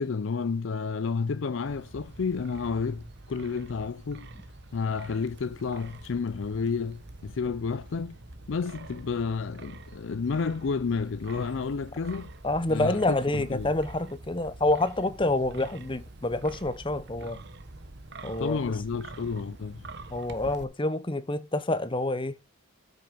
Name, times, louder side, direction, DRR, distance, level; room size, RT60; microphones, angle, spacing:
voice 1, 0.0-4.3 4.7-8.2 8.5-12.3 12.7-13.7 18.4-19.9, left 5 dB, 60° left, 0.4 m, -31 dB
Wind, 1.7-20.6, right 2 dB, 50° right, 1.1 m, -46 dB
voice 2, 12.4-17.4 18.2-18.6 20.1-22.4, left 2 dB, 25° left, 0.8 m, -27 dB
8.6 x 6.2 x 5.3 m
head